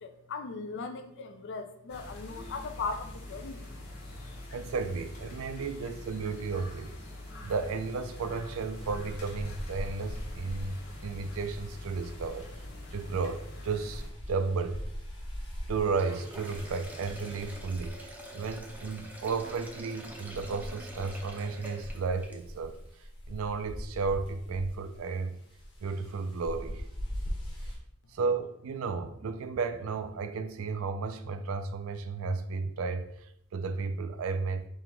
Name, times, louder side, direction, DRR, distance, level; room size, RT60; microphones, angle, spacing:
voice 1, 0.0-3.6, left 4 dB, 60° left, 8 dB, 0.5 m, -38 dB
sound 1, 1.9-14.1, left 1 dB, 90° left, 1.3 m, -44 dB
voice 2, 4.5-6.9 7.4-12.4 12.9-14.8 15.7-22.8 23.3-25.4 25.8-26.8 28.1-34.7, right 4 dB, 70° right, 9 dB, 0.4 m, -33 dB
sound 2, 8.8-27.8, equal, 20° left, 1.0 m, -42 dB
Sink (filling or washing), 15.8-22.7, equal, 10° right, 0.6 m, -46 dB
3.8 x 2.9 x 4.5 m, 0.74 s
head